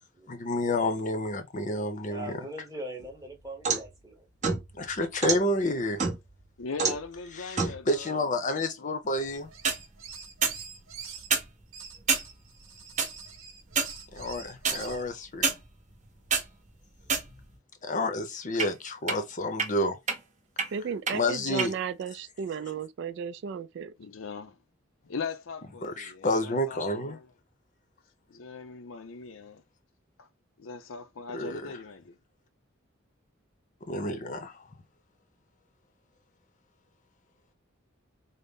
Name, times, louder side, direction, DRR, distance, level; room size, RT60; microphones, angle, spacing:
voice 1, 0.3-2.4 4.7-6.1 7.3-9.5 14.1-15.5 17.8-20.0 21.1-21.7 25.8-27.2 31.3-31.7 33.9-34.6, left 1 dB, 40° left, 0.7 m, -30 dB
voice 2, 2.1-4.2, right 1 dB, 15° right, 1.0 m, -41 dB
sound 1, 3.0-3.9 4.4-5.4 6.0-6.4 6.8-7.1 7.6-7.8 9.5-9.8 10.4-10.6 11.2-11.5 12.1-12.3 13.0-13.1 13.7-14.0 14.6-14.8 15.4-15.6 16.1-16.5 17.0-17.6 18.6-18.7 19.1-19.2 19.6-19.7 20.1-20.2 20.6-20.7 21.1-21.2 21.6-21.7, right 5 dB, 35° right, 0.8 m, -27 dB
voice 3, 6.6-8.3 8.6-8.9 24.0-24.6 25.0-27.3 28.3-29.6 30.2-30.3 30.6-32.2, left 5 dB, 75° left, 0.5 m, -40 dB
sound 2, 9.5-11.3 11.7-15.0, right 6 dB, 85° right, 1.0 m, -44 dB
voice 4, 20.7-23.9, right 6 dB, 60° right, 0.3 m, -34 dB
3.9 x 2.0 x 3.5 m
head